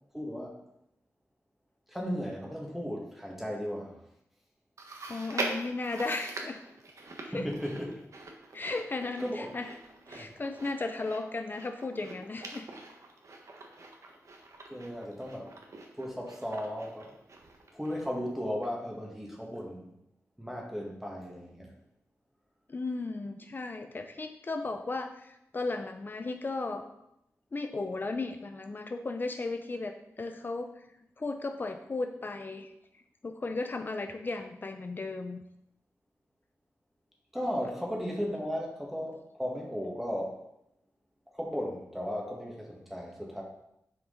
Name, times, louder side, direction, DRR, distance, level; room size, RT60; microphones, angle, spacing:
voice 1, 0.1-0.5 1.9-4.0 7.3-8.0 9.2-9.5 10.2-10.3 14.7-15.5 16.0-17.1 17.7-19.9 20.4-21.7 37.3-40.4 41.3-43.4, equal, 5° right, -1 dB, 1.7 m, -35 dB
Chewing mastication, 4.8-18.3 18.6-18.7 19.5-19.6, right 2 dB, 65° right, 1.2 m, -43 dB
voice 2, 5.1-6.6 7.3-7.5 8.5-9.7 10.1-12.7 22.7-26.8 27.5-30.7 31.2-32.7 33.2-35.4, left 3 dB, 35° left, 6 dB, 0.5 m, -35 dB
9.7 x 4.9 x 3.8 m, 0.81 s
wide cardioid pair, 115°, 6 cm